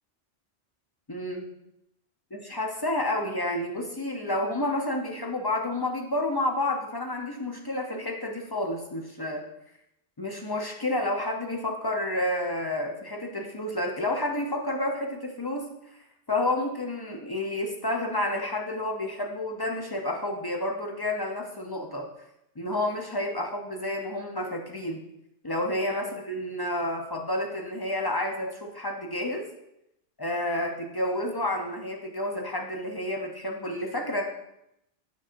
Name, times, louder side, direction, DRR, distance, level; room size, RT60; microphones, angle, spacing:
voice 1, 1.1-1.5 2.3-9.4 10.2-15.7 16.3-22.1 22.6-25.0 25.4-29.4 30.2-34.2, left 1 dB, 30° left, 0 dB, 0.4 m, -30 dB
7.5 x 5.6 x 2.5 m, 0.84 s
omnidirectional pair, 1.2 m